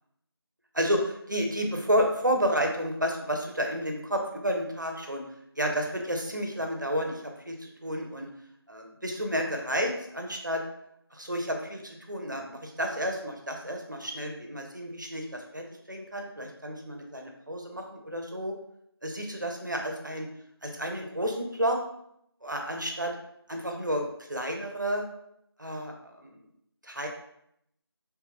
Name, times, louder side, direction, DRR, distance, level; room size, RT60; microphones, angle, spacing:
voice 1, 0.7-5.2 5.6-8.3 8.7-10.6 11.1-18.5 19.0-20.3 20.6-21.8 22.4-23.1 23.5-24.0 24.3-25.0 25.6-26.4 26.8-27.1, equal, 50° right, 2 dB, 0.4 m, -31 dB
2.8 x 2.2 x 2.3 m, 0.74 s
figure-of-eight pair, 175°, 13 cm